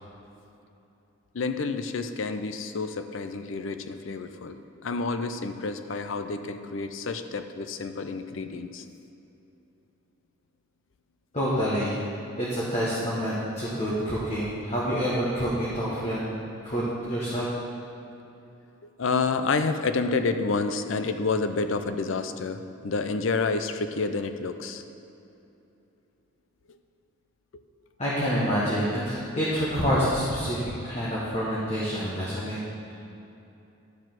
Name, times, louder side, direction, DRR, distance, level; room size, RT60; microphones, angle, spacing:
voice 1, 1.3-8.8 19.0-24.8 26.7-26.8 27.5-27.6, left 4 dB, 70° left, 9 dB, 0.5 m, -29 dB
voice 2, 11.3-12.0 12.3-16.4 16.6-17.5 28.0-32.6, equal, 30° left, -8 dB, 1.4 m, -27 dB
12.0 x 4.7 x 6.0 m, 2.9 s
head